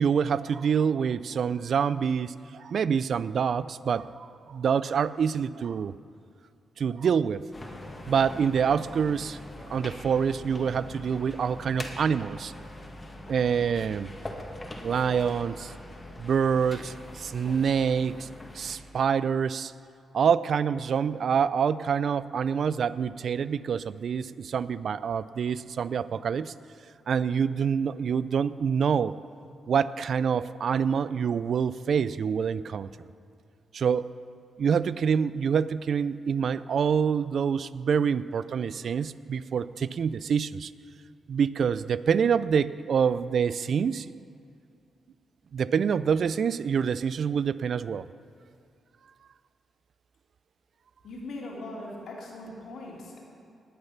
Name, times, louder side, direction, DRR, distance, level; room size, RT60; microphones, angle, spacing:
voice 1, 0.0-5.9 6.8-7.4 8.1-9.4 9.7-12.5 13.3-14.1 14.8-15.7 16.2-18.3 18.5-19.7 20.1-26.5 27.1-29.2 29.7-32.9 33.7-34.1 34.6-40.7 41.3-44.1 45.5-48.1, right 7 dB, 65° right, 16 dB, 0.4 m, -26 dB
sound 1, 7.5-18.8, left 1 dB, 25° left, 2.0 m, -42 dB
voice 2, 51.0-53.2, left 2 dB, 75° left, -3 dB, 2.9 m, -40 dB
19.0 x 6.8 x 5.8 m, 2.4 s
cardioid pair, 60°, 0 cm